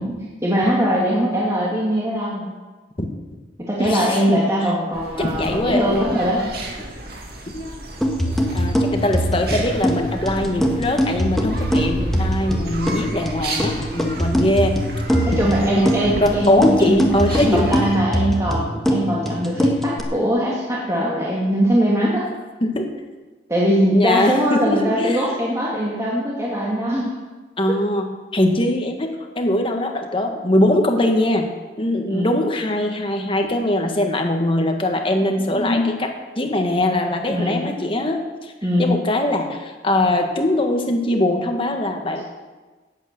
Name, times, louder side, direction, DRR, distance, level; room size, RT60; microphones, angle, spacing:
voice 1, 0.4-2.5 3.7-6.4 15.3-17.2 17.5-22.2 23.5-27.1 32.1-32.4 37.3-37.6 38.6-38.9, equal, 15° right, -5 dB, 2.1 m, -21 dB
voice 2, 3.8-4.4 5.2-5.9 7.5-7.8 8.4-14.8 15.3-17.7 22.6-22.9 23.9-25.3 27.6-31.5 31.8-36.1 36.4-38.5 38.8-42.2, left 1 dB, 30° left, 3 dB, 1.6 m, -21 dB
sound 1, 4.9-18.0, right 1 dB, 55° right, 2.4 m, -33 dB
sound 2, 8.0-20.0, equal, ahead, 1.6 m, -22 dB
17.5 x 8.5 x 6.7 m, 1.3 s
head